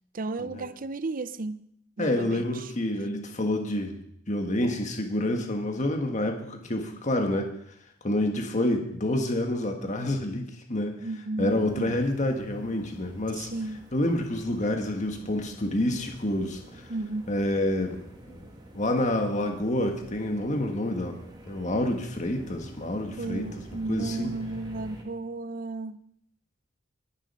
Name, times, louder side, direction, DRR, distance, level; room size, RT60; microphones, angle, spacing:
voice 1, 0.1-1.6 2.0-2.7 11.0-12.0 13.4-13.9 16.9-17.3 23.2-26.0, right 2 dB, 45° right, 0.6 m, -34 dB
voice 2, 2.0-7.5 8.0-11.1 11.4-13.5 13.9-16.9 17.3-18.0 18.3-18.4 18.7-21.2 21.5-23.5 23.9-24.3, left 1 dB, 40° left, 1.6 m, -28 dB
sound 1, 11.5-25.0, right 1 dB, 25° right, 2.4 m, -47 dB
20.5 x 7.4 x 5.6 m
head